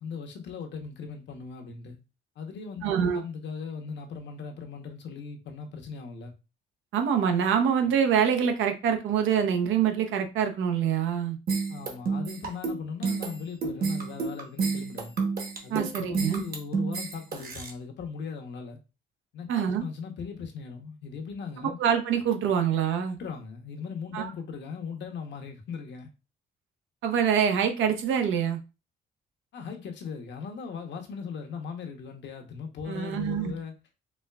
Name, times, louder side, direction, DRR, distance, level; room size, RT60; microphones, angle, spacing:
voice 1, 0.0-2.0 2.4-6.3 11.7-15.1 15.6-18.8 19.3-21.8 23.2-26.1 29.5-33.7, left 5 dB, 65° left, 0.9 m, -38 dB
voice 2, 2.8-3.2 6.9-11.4 15.7-16.4 19.5-19.9 21.6-23.2 24.1-24.3 27.0-28.6 32.9-33.5, right 8 dB, 80° right, 0.6 m, -25 dB
sound 1, 11.5-17.7, right 4 dB, 50° right, 1.0 m, -30 dB
4.2 x 2.3 x 2.2 m
cardioid pair, 90°, 20 cm